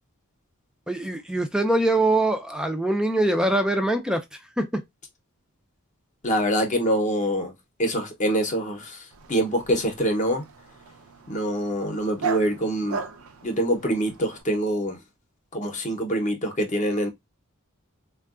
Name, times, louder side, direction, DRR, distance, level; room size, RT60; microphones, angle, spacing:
voice 1, 0.9-4.2 4.6-4.8, right 1 dB, 5° right, 0.3 m, -23 dB
voice 2, 6.2-7.5 7.8-10.4 11.3-13.0 13.4-15.0 15.5-17.1, equal, 35° left, 0.7 m, -25 dB
Dog, 9.1-14.4, right 5 dB, 80° right, 0.5 m, -37 dB
3.6 x 2.2 x 2.3 m
head